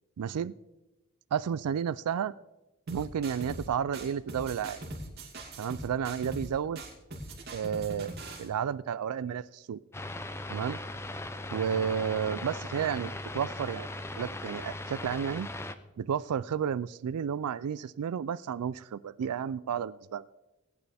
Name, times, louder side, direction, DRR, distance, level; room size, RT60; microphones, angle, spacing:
voice 1, 0.2-0.5 1.3-2.3 2.9-4.8 5.6-6.8 7.5-9.8 10.5-10.8 11.5-13.9 14.2-15.5 16.0-20.2, right 8 dB, 90° right, 17 dB, 0.4 m, -32 dB
sound 1, 2.9-3.7 3.9-6.5 6.7-8.5, right 1 dB, 45° right, 2.9 m, -41 dB
sound 2, 9.9-15.7, left 2 dB, 10° left, 0.5 m, -39 dB
19.5 x 9.1 x 3.5 m, 1.0 s
head